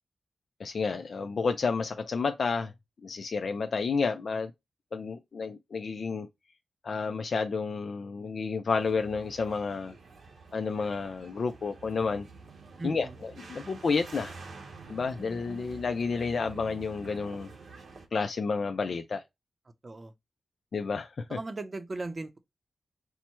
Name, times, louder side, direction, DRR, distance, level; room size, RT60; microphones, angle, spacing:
voice 1, 0.6-2.7 3.0-4.5 4.9-6.3 6.8-9.9 10.5-12.3 12.8-13.1 13.4-14.4 14.9-17.5 18.1-19.2 20.7-21.4, left 4 dB, 65° left, 0.4 m, -30 dB
sound 1, 8.7-18.1, right 4 dB, 85° right, 0.9 m, -48 dB
voice 2, 12.8-13.1 19.8-20.1 21.3-22.4, right 2 dB, 40° right, 0.6 m, -37 dB
4.5 x 2.1 x 4.3 m
wide cardioid pair, 100°, 0 cm